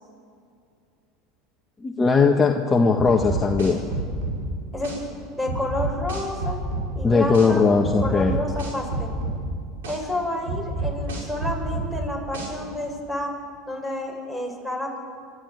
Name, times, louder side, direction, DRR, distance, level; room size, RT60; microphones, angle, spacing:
voice 1, 1.8-3.8 7.0-8.4, left 4 dB, 20° left, 2 dB, 1.7 m, -19 dB
sound 1, 3.0-4.4 4.8-5.0 5.5-6.9 7.3-7.5 7.8-9.4 9.8-10.0 10.5-11.9 12.3-12.5, right 2 dB, 85° right, 6.5 m, -28 dB
voice 2, 5.3-6.6 6.9-7.7 8.0-9.1 9.8-13.3 13.7-15.0, left 1 dB, 5° right, 2 dB, 6.6 m, -30 dB
26.0 x 13.0 x 9.2 m, 2.3 s
hypercardioid pair, 95°, 0 cm